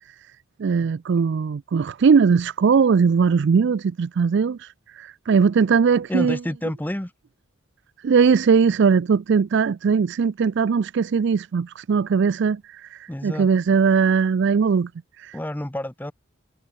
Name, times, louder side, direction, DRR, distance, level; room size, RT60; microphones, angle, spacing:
voice 1, 0.6-6.4 8.0-14.9 15.2-15.4, right 5 dB, 55° right, 0.4 m, -20 dB
voice 2, 6.1-7.1 13.1-13.5 15.3-16.1, left 1 dB, 10° left, 0.7 m, -29 dB
head